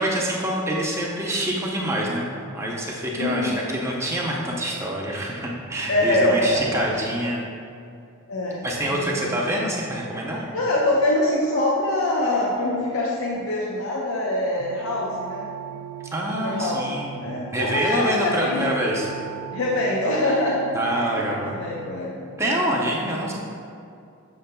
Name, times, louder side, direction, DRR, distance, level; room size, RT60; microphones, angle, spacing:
voice 1, 0.0-7.4 8.6-10.4 16.1-17.2 17.5-19.1 20.7-21.5 22.4-23.3, right 1 dB, 15° right, -3 dB, 0.6 m, -26 dB
voice 2, 3.2-3.6 5.9-6.9 8.3-9.4 10.5-15.5 16.4-16.9 17.2-18.7 19.5-22.6, left 1 dB, 70° left, -4 dB, 0.7 m, -24 dB
sound 1, 14.6-22.0, right 11 dB, 75° right, 0.4 m, -40 dB
6.8 x 6.6 x 2.2 m, 2.5 s
head